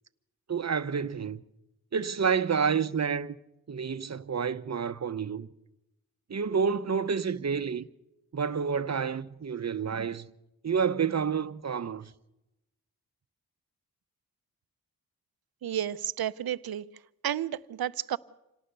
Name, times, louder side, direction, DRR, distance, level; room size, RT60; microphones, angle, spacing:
voice 1, 0.5-1.4 1.9-3.4 3.7-5.5 6.3-7.9 8.3-10.3 10.6-12.1, right 6 dB, 45° right, 0.9 m, -29 dB
voice 2, 15.6-16.8 17.2-18.2, right 10 dB, 75° right, 0.7 m, -31 dB
26.5 x 18.5 x 6.8 m
cardioid pair, 60°, 37 cm